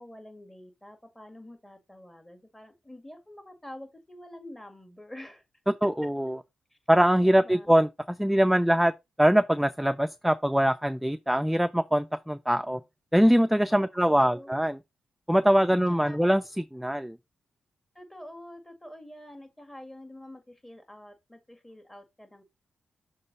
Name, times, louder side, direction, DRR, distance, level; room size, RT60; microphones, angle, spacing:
voice 1, 0.0-5.4 6.7-6.8 7.2-7.7 13.7-14.6 15.9-16.2 17.9-22.4, left 1 dB, 15° left, 2.0 m, -46 dB
voice 2, 5.8-6.4 6.9-8.9 9.2-12.8 13.1-14.8 15.3-16.4 16.7-17.2, equal, 5° right, 0.4 m, -23 dB
6.6 x 3.8 x 4.1 m
cardioid pair, 55°, 2 cm